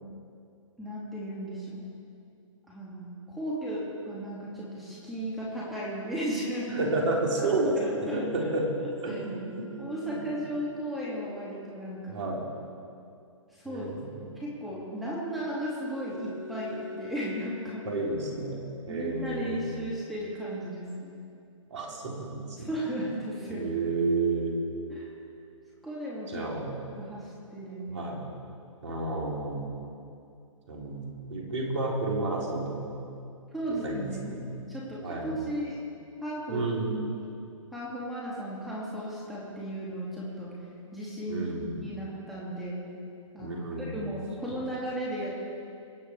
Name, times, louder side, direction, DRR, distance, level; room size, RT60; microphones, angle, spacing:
voice 1, 0.8-1.9 2.7-6.9 7.4-8.3 8.8-9.2 9.6-12.2 13.5-13.8 14.4-17.9 18.9-21.1 22.6-23.7 24.9-25.1 25.8-26.5 27.0-28.1 33.5-35.8 36.2-36.7 37.1-37.3 37.7-40.5 40.9-41.5 41.8-42.8 43.3-45.3, equal, ahead, -8 dB, 2.7 m, -35 dB
voice 2, 6.7-8.7 8.9-9.7 10.0-10.2 12.1-12.4 13.6-14.3 17.8-18.6 18.9-19.7 21.7-22.7 23.5-24.6 26.3-26.7 27.9-28.2 28.8-29.7 30.7-33.0 33.8-34.6 34.9-35.4 36.5-37.0 41.3-41.8 43.4-44.1 44.5-44.6, right 2 dB, 60° right, -2 dB, 4.1 m, -31 dB
sound 1, 8.8-12.2 15.6-19.0 23.1-25.1, left 2 dB, 20° right, 3.9 m, -46 dB
24.0 x 8.7 x 4.9 m, 2.5 s
hypercardioid pair, 135°, 17 cm